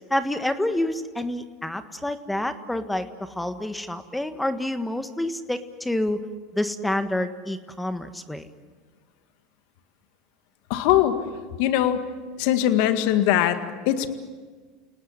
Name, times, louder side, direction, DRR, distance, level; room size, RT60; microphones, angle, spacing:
voice 1, 0.1-3.1 3.3-6.2 6.5-8.5, left 1 dB, 5° left, 10 dB, 1.6 m, -28 dB
voice 2, 10.7-11.2 11.6-12.0 12.4-14.1, left 12 dB, 65° left, 9 dB, 1.9 m, -21 dB
29.0 x 18.5 x 9.9 m, 1.5 s
hypercardioid pair, 95°, 0 cm